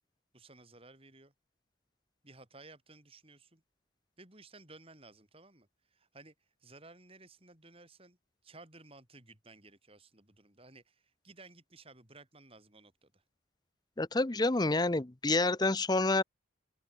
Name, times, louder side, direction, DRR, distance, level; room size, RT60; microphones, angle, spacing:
voice 1, 0.3-1.3 2.2-3.6 4.2-8.2 8.4-13.2, right 3 dB, 30° right, 4.9 m, -56 dB
voice 2, 14.0-16.2, left 2 dB, 20° left, 0.7 m, -28 dB
open air
head